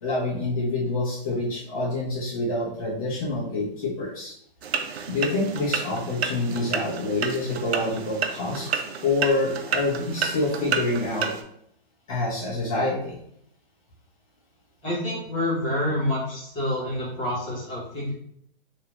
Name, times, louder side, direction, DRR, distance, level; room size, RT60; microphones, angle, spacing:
voice 1, 0.0-4.3 5.1-8.7 9.0-11.3 12.1-13.2, left 2 dB, 35° left, -5 dB, 1.0 m, -27 dB
sound 1, 4.6-11.4, right 6 dB, 90° right, 0.6 m, -30 dB
voice 2, 14.8-18.1, left 1 dB, 10° left, -9 dB, 0.4 m, -27 dB
2.8 x 2.3 x 2.9 m, 0.71 s
hypercardioid pair, 170°, 31 cm